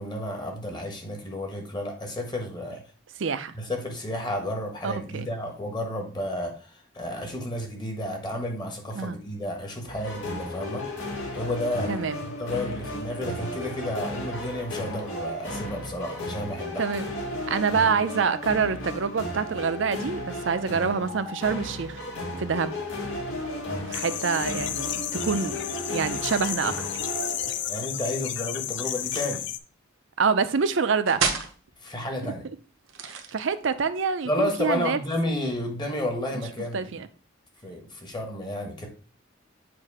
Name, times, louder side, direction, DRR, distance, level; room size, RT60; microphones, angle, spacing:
voice 1, 0.0-2.8 3.6-10.8 11.3-16.8 27.7-29.5 31.8-32.4 34.2-37.0 37.6-38.9, left 1 dB, 20° left, 2 dB, 1.1 m, -31 dB
voice 2, 3.2-3.5 4.8-5.3 9.0-9.2 11.9-12.2 16.8-17.1 17.5-22.0 22.4-22.7 23.9-25.6 25.9-26.7 30.2-31.2 32.2-32.3 33.0-35.0 36.7-37.1, right 5 dB, 65° right, 12 dB, 0.5 m, -26 dB
sound 1, 9.9-28.0, left 1 dB, 85° left, 1.7 m, -34 dB
sound 2, 23.9-29.6, left 11 dB, 60° left, 0.4 m, -32 dB
sound 3, 29.0-29.4 31.1-31.5 32.8-33.7, right 6 dB, 90° right, 0.9 m, -30 dB
7.7 x 2.6 x 4.7 m, 0.37 s
head